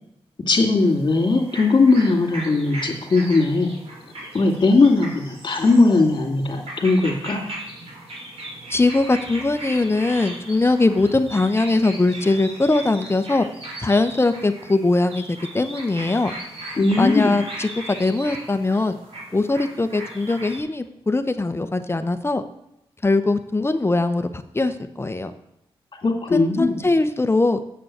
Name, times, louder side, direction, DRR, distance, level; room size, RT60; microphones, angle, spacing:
voice 1, 0.5-3.7 4.3-7.5 16.8-17.3 26.0-26.8, left 3 dB, 50° left, 3 dB, 2.6 m, -18 dB
sound 1, 0.8-20.6, right 1 dB, 75° right, 3.6 m, -37 dB
voice 2, 8.7-13.5 13.8-16.3 17.0-19.0 19.3-22.4 23.0-25.3 26.3-27.6, left 2 dB, 25° left, 10 dB, 0.8 m, -21 dB
7.9 x 6.9 x 7.8 m, 0.83 s
cardioid pair, 65°, 10 cm